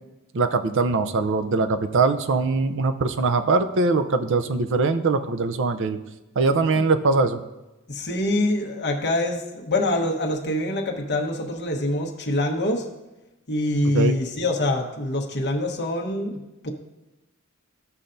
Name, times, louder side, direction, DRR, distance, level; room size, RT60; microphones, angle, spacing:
voice 1, 0.3-6.0 6.4-7.4 13.8-14.1, right 3 dB, 60° right, 9 dB, 0.5 m, -22 dB
voice 2, 7.9-12.8 13.5-16.7, left 1 dB, 50° left, 1 dB, 1.2 m, -25 dB
14.5 x 5.6 x 2.6 m, 1.0 s
head